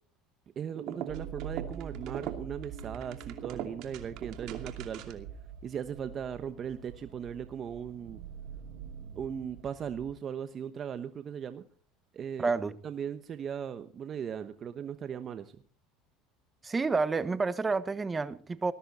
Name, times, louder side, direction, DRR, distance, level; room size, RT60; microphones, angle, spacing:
voice 1, 0.6-5.3 5.6-8.2 9.1-11.6 12.1-12.5 12.8-15.6, right 8 dB, 40° right, 1.1 m, -38 dB
sound 1, 0.7-5.3, right 11 dB, 60° right, 2.6 m, -42 dB
sound 2, 1.1-10.1, right 7 dB, 85° right, 3.2 m, -45 dB
voice 2, 12.4-12.7 16.6-18.7, right 4 dB, 20° right, 1.3 m, -29 dB
19.5 x 14.5 x 4.2 m
supercardioid pair, 115°, 0 cm